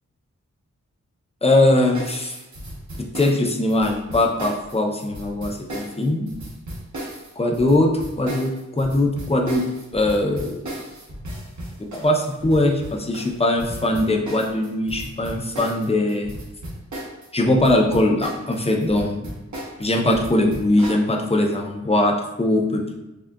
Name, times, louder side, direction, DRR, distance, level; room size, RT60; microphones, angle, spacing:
voice 1, 1.4-2.3 3.0-6.3 7.4-9.7 9.9-10.7 11.8-16.3 17.3-19.3 19.8-22.9, left 1 dB, 20° left, 2 dB, 0.6 m, -21 dB
sound 1, 1.9-17.3 17.5-21.1, right 1 dB, 75° right, 1.0 m, -35 dB
6.4 x 2.4 x 2.2 m, 0.98 s
wide cardioid pair, 70°, 30 cm